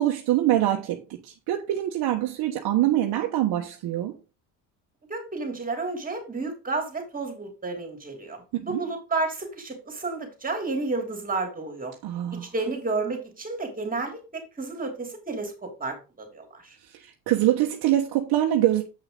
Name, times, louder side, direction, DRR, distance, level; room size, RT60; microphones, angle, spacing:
voice 1, 0.0-4.1 8.6-8.8 12.0-12.5 16.9-18.8, right 13 dB, 60° right, 1.4 m, -24 dB
voice 2, 5.1-8.4 8.6-11.9 12.3-16.8, right 3 dB, 20° right, 3.3 m, -31 dB
8.1 x 5.8 x 3.8 m
cardioid pair, 105°, 41 cm